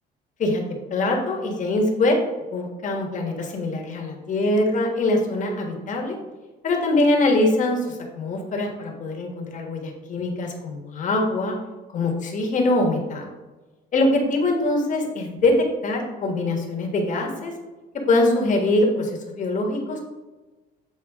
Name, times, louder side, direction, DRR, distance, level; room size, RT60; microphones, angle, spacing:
voice 1, 0.9-2.2 2.5-6.2 6.6-11.5 11.9-13.3 13.9-17.5 18.1-20.0, left 2 dB, 50° left, 1 dB, 1.5 m, -23 dB
8.1 x 4.2 x 3.6 m, 1.2 s
cardioid pair, 110°, 17 cm